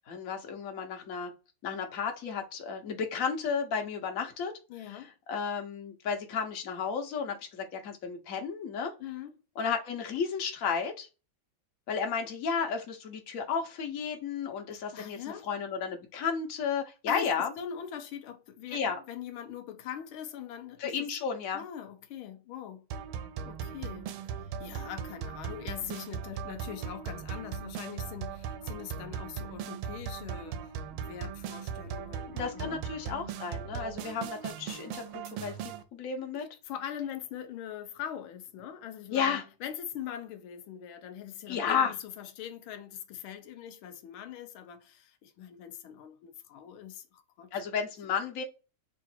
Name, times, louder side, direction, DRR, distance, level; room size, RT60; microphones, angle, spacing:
voice 1, 0.1-1.3 1.6-4.5 4.9-5.0 5.3-8.9 9.6-11.1 11.9-15.2 15.5-17.5 18.7-19.0 20.8-21.6 32.3-36.5 39.1-39.4 41.5-41.9 47.5-48.4, left 6 dB, 50° left, 1.1 m, -33 dB
voice 2, 4.7-5.1 9.0-9.3 14.9-15.5 17.1-17.3 17.6-21.1 21.5-22.9 23.5-24.1 24.4-30.6 30.9-33.4 33.7-34.0 36.4-47.5, left 9 dB, 90° left, 1.5 m, -42 dB
sound 1, 22.9-35.8, right 7 dB, 80° right, 1.4 m, -38 dB
3.9 x 2.5 x 4.3 m
omnidirectional pair, 2.2 m